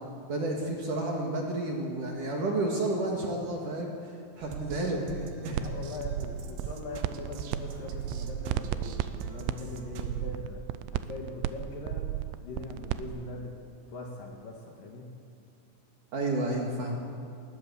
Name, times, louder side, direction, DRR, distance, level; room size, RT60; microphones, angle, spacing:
voice 1, 0.3-4.1 4.4-5.7 16.1-17.0, right 2 dB, 55° right, 0 dB, 2.8 m, -31 dB
sound 1, 4.4-10.1, right 5 dB, 75° right, 3.5 m, -42 dB
voice 2, 5.5-10.6 10.9-12.1 12.4-13.5 13.9-15.1, left 2 dB, 55° left, 1 dB, 2.8 m, -41 dB
sound 2, 5.5-5.7 6.0-7.6 7.8-13.0, right 13 dB, 90° right, 3.3 m, -33 dB
21.0 x 20.0 x 7.0 m, 2.4 s
omnidirectional pair, 5.6 m